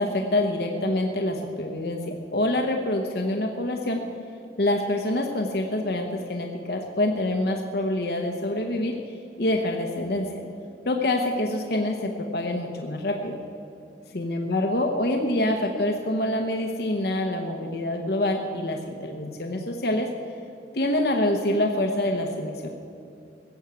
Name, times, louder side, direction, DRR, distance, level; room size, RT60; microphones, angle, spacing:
voice 1, 0.0-4.0 4.6-9.0 9.4-10.4 10.8-13.4 14.1-20.1 20.7-22.7, left 1 dB, 60° left, 2 dB, 1.0 m, -26 dB
16.5 x 7.2 x 8.1 m, 2.6 s
head